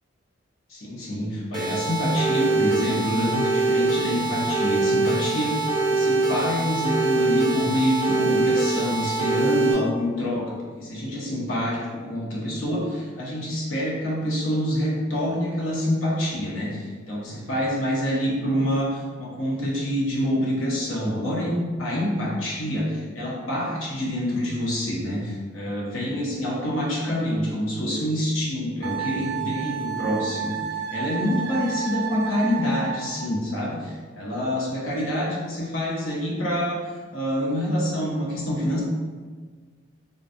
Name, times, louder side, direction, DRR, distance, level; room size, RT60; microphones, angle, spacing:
voice 1, 0.7-30.6 30.9-36.8 37.1-38.8, equal, 80° left, -5 dB, 0.9 m, -26 dB
sound 1, 1.5-9.7, right 3 dB, 20° right, 0.6 m, -24 dB
Wind instrument woodwind instrument, 28.8-33.3, right 8 dB, 50° right, 0.3 m, -31 dB
3.8 x 2.3 x 2.6 m, 1.5 s
head